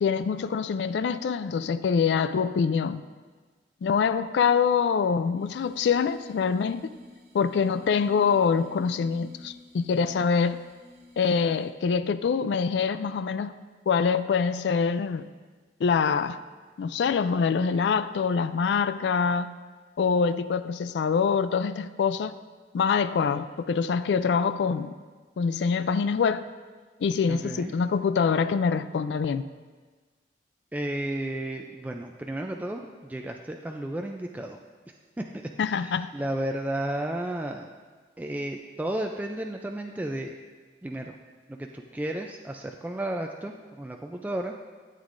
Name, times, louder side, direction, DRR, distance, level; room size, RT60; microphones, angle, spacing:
voice 1, 0.0-3.0 3.8-6.9 7.3-10.7 11.2-13.5 13.9-15.3 15.8-16.4 16.8-19.6 20.0-22.3 22.7-24.9 25.4-26.5 27.0-29.4 35.6-36.1, left 6 dB, 80° left, 14 dB, 0.3 m, -25 dB
sound 1, 5.4-11.9, left 2 dB, 35° right, 1.3 m, -51 dB
voice 2, 27.3-27.7 30.7-34.6 35.2-35.4 35.7-37.7 38.2-40.3 40.8-41.1 41.5-44.5, right 1 dB, 10° right, 2 dB, 0.3 m, -33 dB
12.5 x 8.2 x 2.5 m, 1.4 s
head